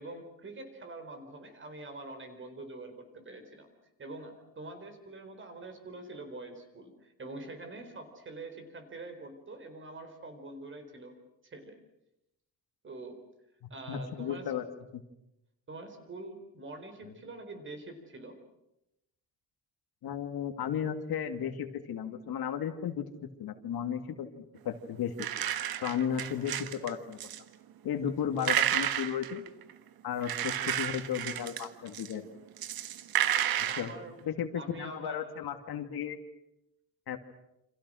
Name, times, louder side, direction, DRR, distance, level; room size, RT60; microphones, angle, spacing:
voice 1, 0.0-3.7 4.0-11.1 11.4-11.8 12.8-13.2 13.7-14.4 15.7-18.4 25.7-25.8 26.2-26.3 33.6-34.1 34.5-35.3, right 2 dB, 30° right, 7 dB, 4.4 m, -45 dB
voice 2, 13.9-14.7 14.9-15.0 17.0-17.1 20.0-23.1 23.4-25.3 25.8-27.2 27.8-29.4 30.0-32.3 33.6-33.9 34.2-36.2 37.1-37.2, left 8 dB, 80° left, 6 dB, 2.4 m, -34 dB
sound 1, 25.2-26.9 27.2-27.4 28.4-29.7 30.2-32.1 32.6-33.9, right 11 dB, 70° right, 1.5 m, -31 dB
28.5 x 27.0 x 6.4 m, 0.86 s
wide cardioid pair, 180°, 37 cm